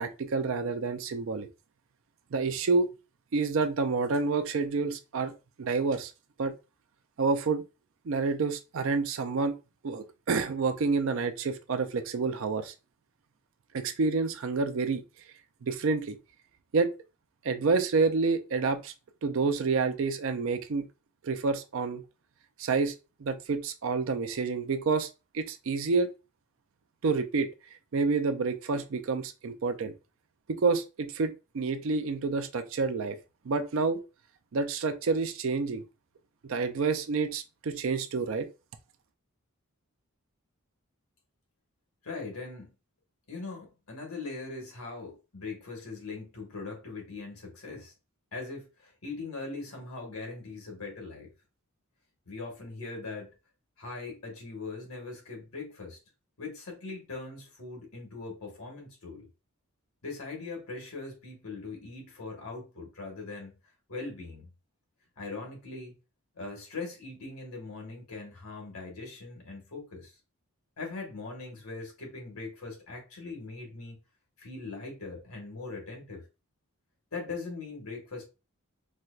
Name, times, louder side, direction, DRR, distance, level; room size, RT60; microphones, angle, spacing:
voice 1, 0.0-1.5 2.3-2.9 3.3-6.1 6.4-6.5 7.2-7.6 8.1-9.5 9.8-12.7 13.7-15.0 15.6-16.2 16.7-16.9 17.4-18.9 19.2-20.9 21.2-22.0 22.6-22.9 23.2-26.1 27.0-27.5 27.9-29.9 30.5-33.2 33.4-34.0 34.5-35.8 36.4-38.5, right 4 dB, 60° right, 0.4 m, -28 dB
voice 2, 42.0-42.7 43.3-47.9 48.3-51.3 52.3-53.3 53.8-56.0 56.4-59.3 60.0-63.5 63.9-64.5 65.2-65.9 66.3-70.1 70.8-74.0 74.4-76.2 77.1-78.2, left 3 dB, 80° left, 1.3 m, -40 dB
4.3 x 2.2 x 2.4 m
head